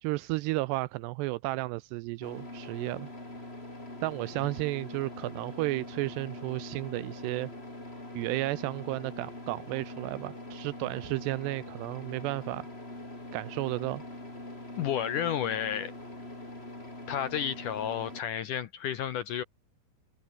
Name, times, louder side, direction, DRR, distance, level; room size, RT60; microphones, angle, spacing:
voice 1, 0.0-3.1 4.0-7.5 8.2-12.7 13.3-14.0, right 20 dB, 85° right, 2.5 m, -33 dB
sound 1, 2.2-18.2, left 1 dB, 15° left, 5.6 m, -43 dB
voice 2, 14.8-15.9 17.1-19.4, left 9 dB, 70° left, 1.9 m, -31 dB
omnidirectional pair, 5.2 m